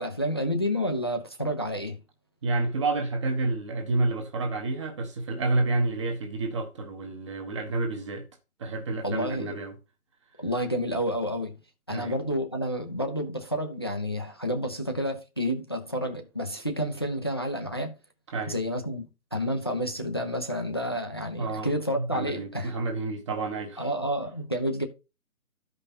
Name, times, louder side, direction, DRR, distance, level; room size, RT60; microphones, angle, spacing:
voice 1, 0.0-2.0 9.0-9.6 10.4-11.6 11.9-17.9 18.5-22.7 23.8-24.9, equal, 15° left, 0.6 m, -30 dB
voice 2, 2.4-8.3 8.6-9.8 11.9-12.2 18.3-18.6 21.4-21.7 21.9-23.9, right 3 dB, 20° right, 1.1 m, -29 dB
12.5 x 5.4 x 4.1 m
figure-of-eight pair, 155°, 45 cm